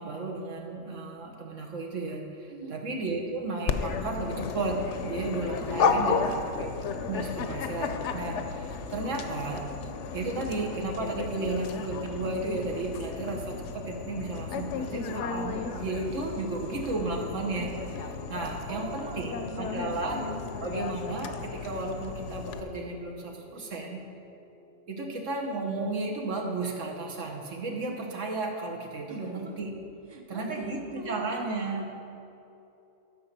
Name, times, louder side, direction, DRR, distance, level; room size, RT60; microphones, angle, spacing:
voice 1, 0.0-4.8 5.0-6.1 6.4-9.6 10.1-20.2 20.6-24.0 24.9-29.7 30.3-31.8, right 3 dB, 70° right, -1 dB, 1.6 m, -34 dB
Dog, 3.7-22.6, left 5 dB, 70° left, 0.9 m, -33 dB
voice 2, 5.5-6.6 18.7-20.1 29.1-29.6 30.1-31.9, right 3 dB, 25° right, 3 dB, 0.9 m, -43 dB
sound 1, 14.6-25.7, right 1 dB, 50° right, 3.0 m, -50 dB
12.0 x 5.5 x 6.7 m, 2.8 s
omnidirectional pair, 1.3 m